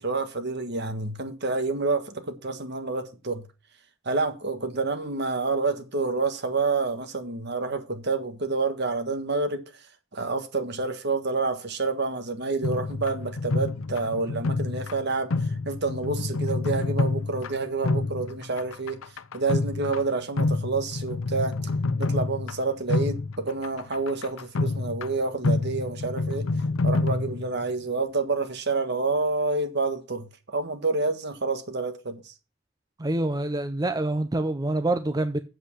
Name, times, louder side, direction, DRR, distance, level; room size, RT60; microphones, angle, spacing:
voice 1, 0.0-3.5 4.0-9.6 10.1-15.3 15.6-19.0 19.3-21.6 22.0-26.5 26.8-32.3, right 3 dB, 55° right, 1.6 m, -28 dB
sound 1, 12.6-27.7, left 3 dB, 80° left, 0.7 m, -28 dB
voice 2, 33.0-35.4, right 2 dB, 20° right, 0.6 m, -26 dB
8.1 x 7.8 x 6.2 m
head